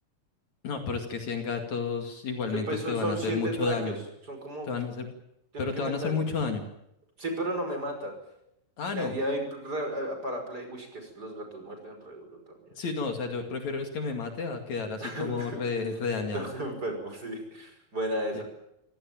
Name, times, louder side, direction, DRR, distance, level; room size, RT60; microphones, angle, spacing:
voice 1, 0.6-4.0 4.7-5.1 5.6-6.7 8.8-9.2 12.8-16.5 18.3-18.4, left 4 dB, 60° left, 4 dB, 3.5 m, -31 dB
voice 2, 2.5-3.9 4.3-4.7 5.5-6.2 7.2-8.2 8.9-12.4 15.0-15.6 16.3-18.4, right 1 dB, 25° right, 5 dB, 6.0 m, -33 dB
26.0 x 17.5 x 9.0 m, 0.83 s
omnidirectional pair, 3.9 m